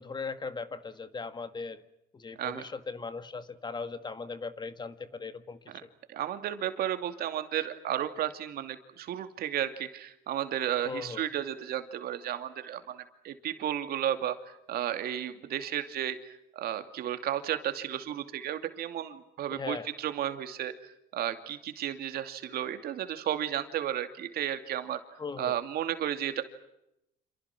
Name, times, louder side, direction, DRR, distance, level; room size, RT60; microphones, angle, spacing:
voice 1, 0.0-1.8 2.1-5.9 10.8-11.3 19.5-19.9 25.2-25.6, left 4 dB, 25° left, 11 dB, 1.8 m, -38 dB
voice 2, 6.1-25.0 25.4-26.4, right 11 dB, 65° right, 8 dB, 2.6 m, -33 dB
28.0 x 28.0 x 6.1 m, 0.83 s
cardioid pair, 110°, 17 cm